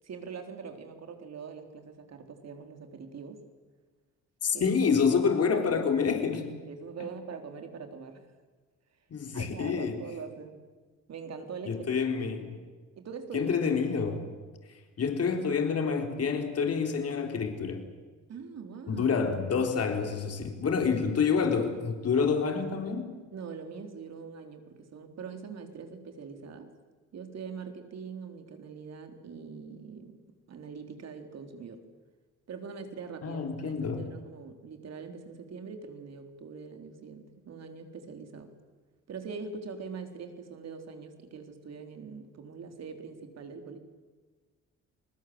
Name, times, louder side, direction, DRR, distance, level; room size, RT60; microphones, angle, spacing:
voice 1, 0.0-3.4 4.5-4.7 5.5-5.8 6.7-8.3 9.3-10.6 11.1-11.9 13.0-13.6 18.3-19.1 23.3-26.7 27.1-30.2 30.5-31.8 32.5-38.6 39.1-43.8, right 5 dB, 60° right, 6 dB, 3.9 m, -43 dB
voice 2, 4.4-6.6 9.1-10.0 11.7-12.6 13.3-14.2 15.0-17.8 18.9-23.2 33.2-34.1, left 5 dB, 55° left, 5 dB, 4.1 m, -28 dB
30.0 x 20.5 x 8.0 m, 1.4 s
cardioid pair, 90°, 30 cm